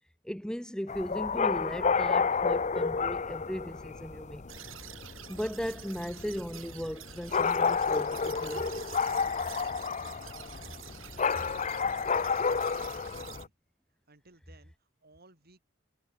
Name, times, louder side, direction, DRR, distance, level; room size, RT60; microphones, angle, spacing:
voice 1, 0.2-4.4 5.3-8.8, equal, 5° left, 1.1 m, -37 dB
sound 1, 0.9-13.5, left 5 dB, 35° left, 0.8 m, -31 dB
sound 2, 4.5-13.4, right 12 dB, 90° right, 5.8 m, -49 dB
voice 2, 12.0-13.5 14.1-15.6, right 3 dB, 50° right, 6.5 m, -60 dB
head